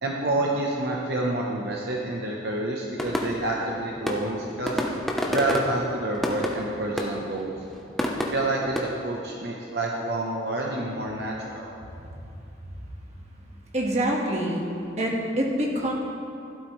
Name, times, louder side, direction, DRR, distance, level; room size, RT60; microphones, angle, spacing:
voice 1, 0.0-4.8 5.3-7.5 8.3-11.7, right 2 dB, 60° right, -2 dB, 1.0 m, -28 dB
sound 1, 3.0-8.8, left 1 dB, ahead, 0.9 m, -30 dB
voice 2, 13.7-14.6 15.0-15.9, right 1 dB, 35° right, -1 dB, 1.6 m, -26 dB
15.5 x 12.5 x 3.2 m, 2.8 s
head